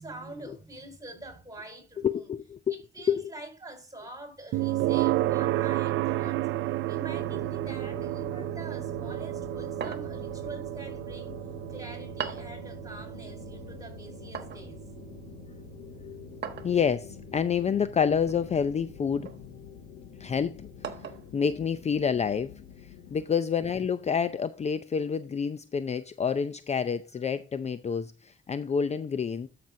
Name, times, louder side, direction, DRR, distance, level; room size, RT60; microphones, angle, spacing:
voice 1, 0.0-2.3 2.7-6.4 6.9-11.4 11.7-14.8, right 1 dB, 15° right, 4.2 m, -45 dB
voice 2, 2.0-2.8 3.1-3.3 16.6-19.3 20.2-20.7 21.3-22.5 22.8-29.5, left 7 dB, 35° left, 0.5 m, -28 dB
sound 1, 4.5-19.5, right 15 dB, 80° right, 0.5 m, -32 dB
sound 2, 7.1-23.2, left 12 dB, 75° left, 0.6 m, -47 dB
sound 3, 9.8-10.3 12.2-12.6 14.3-14.7 16.4-16.8 18.3-18.6 19.2-19.4 20.8-21.3, right 8 dB, 55° right, 1.3 m, -38 dB
13.0 x 6.0 x 2.7 m
cardioid pair, 90°, 20 cm